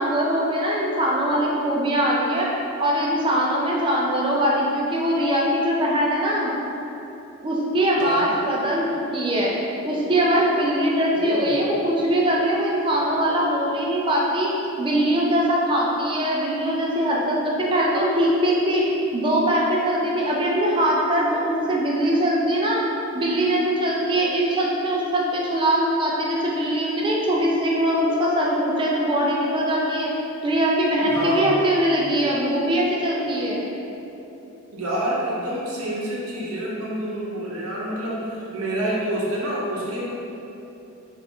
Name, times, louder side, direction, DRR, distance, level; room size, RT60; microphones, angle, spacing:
voice 1, 0.0-2.5 2.8-6.5 7.4-9.5 9.8-14.5 14.8-18.8 19.1-22.8 23.1-30.1 30.4-33.6, right 1 dB, 20° right, -4 dB, 0.4 m, -22 dB
voice 2, 8.0-8.3 11.1-11.5 31.0-31.6 34.7-40.1, right 1 dB, 80° right, -6 dB, 0.9 m, -27 dB
3.5 x 2.6 x 4.2 m, 3.0 s
head